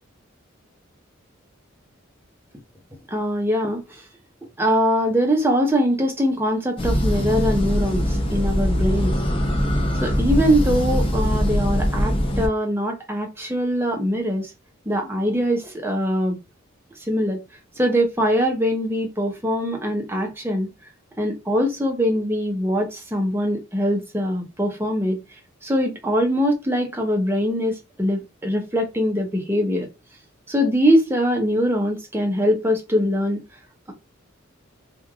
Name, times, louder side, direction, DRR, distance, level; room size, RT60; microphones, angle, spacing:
voice 1, 3.1-4.0 4.6-9.2 10.0-14.5 14.9-16.4 17.1-17.4 17.8-20.7 21.2-25.2 25.6-29.9 30.5-33.4, equal, 10° right, 0.8 m, -22 dB
sound 1, 6.8-12.5, equal, 25° left, 0.6 m, -22 dB
3.2 x 2.5 x 2.3 m
head